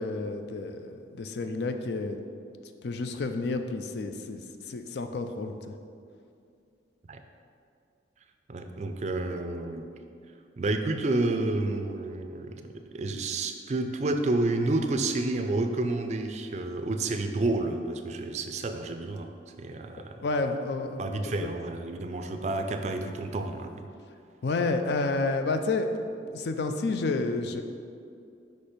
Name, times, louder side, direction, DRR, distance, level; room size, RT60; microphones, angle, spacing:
voice 1, 0.0-2.2 2.8-4.4 4.7-5.7 20.2-21.3 24.4-26.1 26.3-27.6, left 3 dB, 60° left, 7 dB, 0.4 m, -30 dB
voice 2, 8.5-9.9 10.6-12.5 12.9-19.3 19.6-20.2 21.0-23.8, right 2 dB, 40° right, 6 dB, 0.3 m, -30 dB
5.2 x 4.4 x 5.0 m, 2.4 s
head